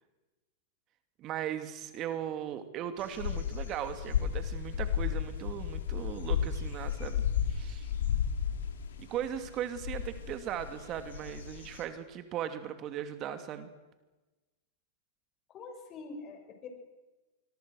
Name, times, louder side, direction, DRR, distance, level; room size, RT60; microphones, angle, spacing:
voice 1, 1.2-7.2 7.5-7.9 9.0-13.7, right 10 dB, 40° right, 9 dB, 2.6 m, -38 dB
sound 1, 3.0-11.8, left 8 dB, 80° left, 3.9 m, -33 dB
voice 2, 15.5-16.7, left 4 dB, 35° left, 4 dB, 6.9 m, -45 dB
25.0 x 22.5 x 6.5 m, 1.1 s
hypercardioid pair, 110°, 0 cm